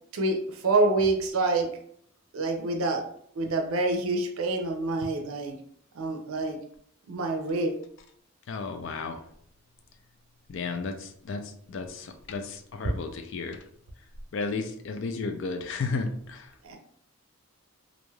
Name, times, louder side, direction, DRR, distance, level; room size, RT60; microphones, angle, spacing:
voice 1, 0.1-1.7 2.3-3.0 3.4-5.6 6.0-6.6 7.1-7.7 16.6-16.8, right 2 dB, 80° right, 3 dB, 0.5 m, -26 dB
voice 2, 8.5-9.2 10.5-13.6 14.3-16.5, left 4 dB, 60° left, 6 dB, 0.4 m, -33 dB
3.1 x 2.5 x 2.3 m, 0.65 s
head